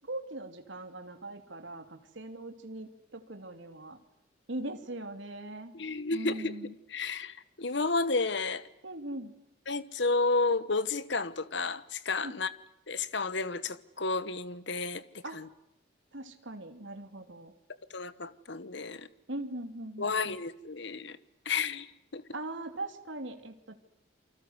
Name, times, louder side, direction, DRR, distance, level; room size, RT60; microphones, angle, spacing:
voice 1, 0.0-4.0 4.5-5.7 6.1-6.7 8.8-9.3 12.2-12.3 15.2-15.4 16.1-17.5 19.3-20.4 22.3-23.7, right 1 dB, 65° right, 6 dB, 2.8 m, -40 dB
voice 2, 5.7-8.7 9.7-12.5 12.9-15.5 17.9-19.1 20.0-21.2 21.4-21.9 22.1-22.2, left 3 dB, 60° left, 15 dB, 1.2 m, -32 dB
28.5 x 25.0 x 8.0 m, 0.84 s
head